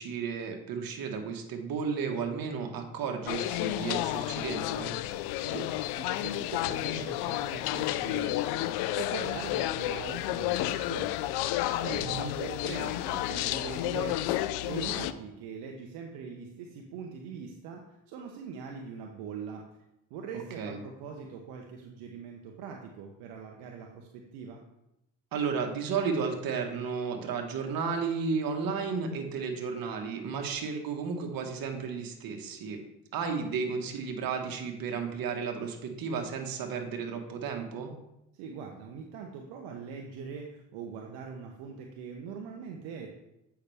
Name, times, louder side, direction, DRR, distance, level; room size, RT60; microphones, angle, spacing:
voice 1, 0.0-4.9 12.0-12.3 20.6-20.8 25.3-32.8 33.1-37.9, right 5 dB, 60° right, 3 dB, 1.6 m, -33 dB
sound 1, 3.3-15.1, left 14 dB, 75° left, 0.5 m, -31 dB
voice 2, 5.3-8.6 8.9-11.3 11.8-19.7 20.1-24.6 38.3-43.1, right 6 dB, 80° right, 2 dB, 0.9 m, -42 dB
8.2 x 5.8 x 3.4 m, 0.87 s
supercardioid pair, 70°, 39 cm